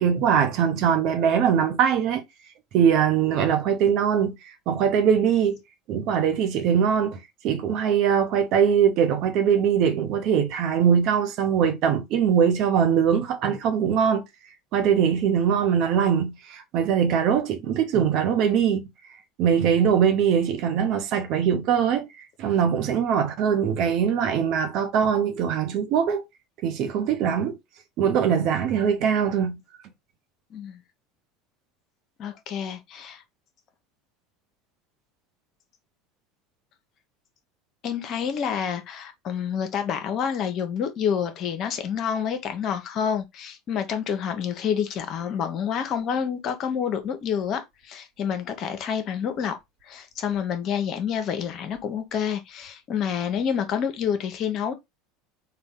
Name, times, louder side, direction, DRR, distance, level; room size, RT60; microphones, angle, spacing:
voice 1, 0.0-2.2 2.7-4.4 4.7-5.6 5.9-14.2 14.7-18.9 19.4-22.1 22.4-26.2 26.6-27.6 28.0-29.6, right 8 dB, 55° right, 0.8 m, -22 dB
voice 2, 32.2-33.2 37.8-49.6 49.8-54.7, left 7 dB, 45° left, 0.8 m, -28 dB
3.9 x 2.3 x 3.6 m
hypercardioid pair, 75°, 0 cm